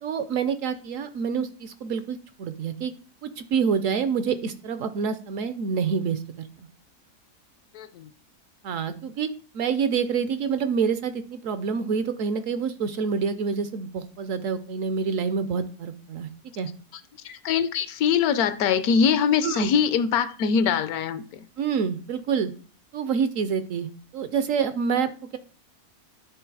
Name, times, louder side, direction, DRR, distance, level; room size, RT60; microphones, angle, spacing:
voice 1, 0.0-2.9 3.2-6.7 8.6-16.3 16.6-16.7 19.4-19.7 21.6-22.5 22.9-23.9 24.1-25.4, right 6 dB, 70° right, 0.9 m, -27 dB
voice 2, 7.7-8.1 16.9-21.5, left 7 dB, 75° left, 1.1 m, -23 dB
10.0 x 3.7 x 4.6 m
omnidirectional pair, 1.6 m